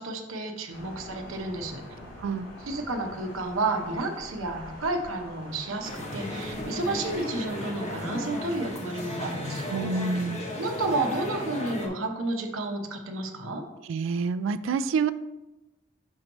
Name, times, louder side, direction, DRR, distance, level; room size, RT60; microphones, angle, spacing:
voice 1, 0.0-1.8 2.6-10.2 10.5-13.6, right 2 dB, 90° right, 4 dB, 0.8 m, -31 dB
Thunder, 0.7-8.7, left 1 dB, 90° left, 1.9 m, -45 dB
sound 1, 5.8-11.9, left 1 dB, 35° left, 0.9 m, -35 dB
voice 2, 9.7-10.4 13.9-15.1, right 5 dB, 70° right, 13 dB, 0.3 m, -27 dB
6.3 x 3.0 x 5.2 m, 1.0 s
head